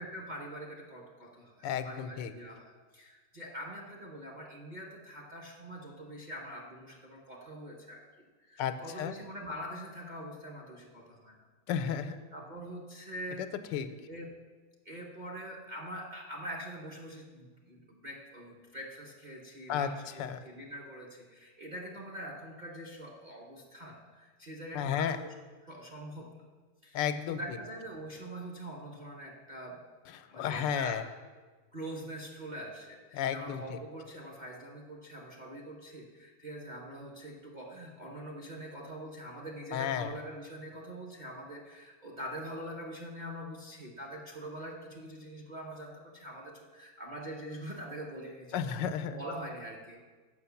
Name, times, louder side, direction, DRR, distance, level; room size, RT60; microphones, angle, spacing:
voice 1, 0.0-8.0 8.5-11.5 12.3-13.5 14.1-14.3 14.8-25.3 25.6-26.4 26.8-29.8 30.3-31.1 31.7-48.8 49.1-50.1, equal, 35° right, -2 dB, 0.8 m, -44 dB
voice 2, 1.6-2.3 8.6-9.2 11.7-12.2 13.4-13.9 19.7-19.9 20.2-20.4 24.7-25.2 26.9-27.4 30.2-31.0 33.1-33.8 39.7-40.1 48.5-49.2, left 8 dB, 85° left, 11 dB, 1.3 m, -33 dB
7.1 x 6.0 x 7.0 m, 1.4 s
omnidirectional pair, 1.9 m